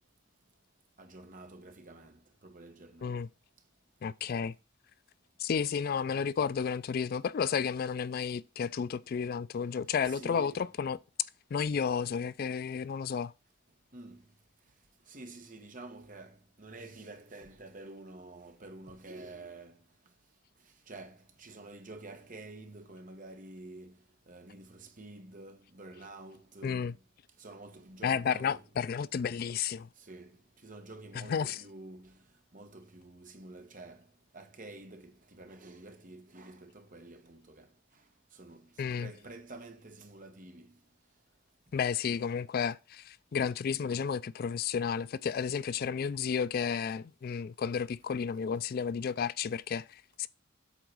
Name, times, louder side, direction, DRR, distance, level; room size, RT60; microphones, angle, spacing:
voice 1, 1.0-3.1 10.1-10.7 13.9-14.2 15.1-19.8 20.9-24.0 24.3-26.9 27.4-28.6 30.0-30.4 30.6-32.2 32.5-34.0 34.3-37.7 38.3-38.7 39.0-40.7, right 2 dB, 45° right, 1.3 m, -49 dB
voice 2, 4.0-4.5 5.4-11.0 11.5-13.3 26.6-26.9 28.0-29.9 31.1-31.6 38.8-39.1 41.7-50.3, left 6 dB, 50° left, 0.3 m, -32 dB
8.2 x 4.0 x 6.2 m
head